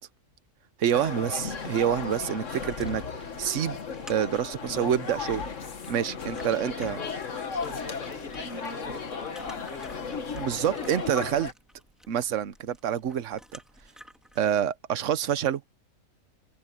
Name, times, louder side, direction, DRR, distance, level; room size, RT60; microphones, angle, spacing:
voice 1, 0.8-3.0 3.4-3.8 4.1-5.4 5.9-7.0 10.4-11.5 12.1-13.6 14.4-15.6, right 9 dB, 70° right, 1.2 m, -27 dB
sound 1, 0.9-11.5, left 5 dB, 65° left, 2.0 m, -35 dB
sound 2, 2.4-14.6, equal, ahead, 3.3 m, -54 dB
voice 2, 6.1-11.1, left 4 dB, 90° left, 2.9 m, -44 dB
open air
omnidirectional pair, 1.4 m